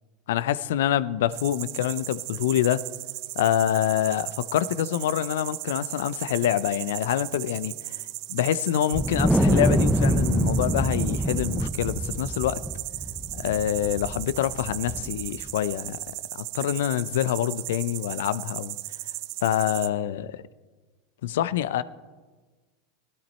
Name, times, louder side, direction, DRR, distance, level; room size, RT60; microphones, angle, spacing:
voice 1, 0.3-2.8 3.4-8.0 8.3-12.6 13.3-18.8 19.4-20.4 21.2-21.8, left 11 dB, 70° left, 17 dB, 0.5 m, -26 dB
sound 1, 1.3-19.9, right 18 dB, 55° right, 0.6 m, -36 dB
Wind, 8.9-15.5, right 1 dB, 5° right, 0.7 m, -25 dB
16.0 x 12.0 x 4.4 m, 1.4 s
hypercardioid pair, 90°, 0 cm